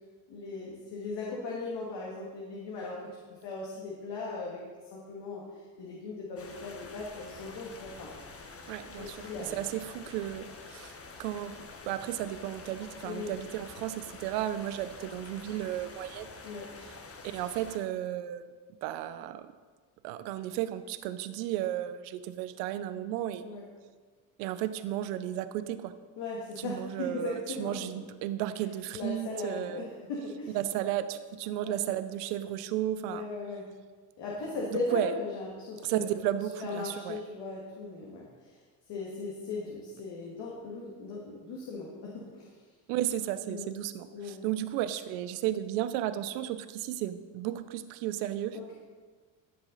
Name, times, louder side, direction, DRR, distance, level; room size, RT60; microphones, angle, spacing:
voice 1, 0.3-3.0 3.4-4.6 4.9-5.4 5.8-8.1 9.0-9.6 13.0-13.3 16.4-16.7 23.4-23.7 26.2-27.7 28.9-30.6 31.6-31.8 33.1-33.6 34.2-36.0 36.3-38.3 38.9-42.6 43.5-43.7 44.1-44.4 48.5-48.7, left 3 dB, 65° left, -4 dB, 2.4 m, -38 dB
sound 1, 6.4-17.8, left 4 dB, 30° left, 1.4 m, -47 dB
voice 2, 8.7-10.9 11.2-11.5 11.9-16.3 17.2-18.5 18.8-19.5 20.0-23.4 24.4-25.9 26.6-29.8 30.5-33.2 34.9-35.1 35.8-37.2 42.9-48.6, right 12 dB, 85° right, 12 dB, 0.8 m, -33 dB
14.5 x 7.0 x 4.0 m, 1.4 s
supercardioid pair, 75°, 46 cm